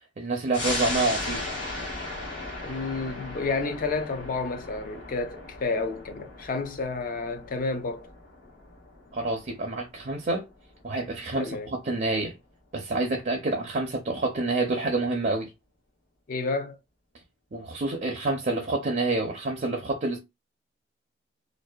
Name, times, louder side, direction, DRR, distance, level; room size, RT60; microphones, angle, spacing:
voice 1, 0.2-1.5 9.1-10.5 10.8-12.4 12.7-15.5 17.5-20.2, right 2 dB, 45° right, 0.5 m, -28 dB
sound 1, 0.5-11.5 11.9-12.0, left 2 dB, 65° left, 1.2 m, -37 dB
voice 2, 2.6-8.1 11.3-11.7 16.3-16.8, left 3 dB, 50° left, 0.4 m, -30 dB
2.6 x 2.1 x 2.2 m
head